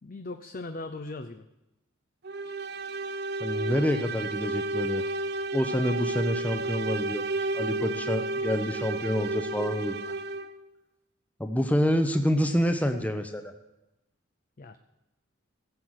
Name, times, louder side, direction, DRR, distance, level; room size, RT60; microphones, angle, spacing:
voice 1, 0.0-1.5 14.6-14.8, left 2 dB, 40° left, 7 dB, 0.6 m, -39 dB
sound 1, 2.2-10.6, right 2 dB, 50° right, 0.7 m, -32 dB
voice 2, 3.4-5.0 5.5-10.1 11.4-13.5, equal, 5° left, 6 dB, 0.8 m, -27 dB
16.0 x 7.7 x 6.4 m, 0.94 s
head